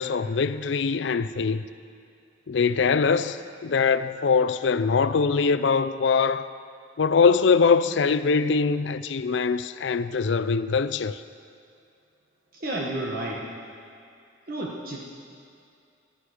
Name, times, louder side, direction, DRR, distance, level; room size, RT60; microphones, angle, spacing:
voice 1, 0.0-1.6 2.5-6.5 7.0-11.2, left 5 dB, 70° left, 0.5 m, -23 dB
voice 2, 12.5-13.4 14.5-15.1, right 1 dB, 50° right, 1.3 m, -31 dB
16.5 x 11.5 x 4.9 m
head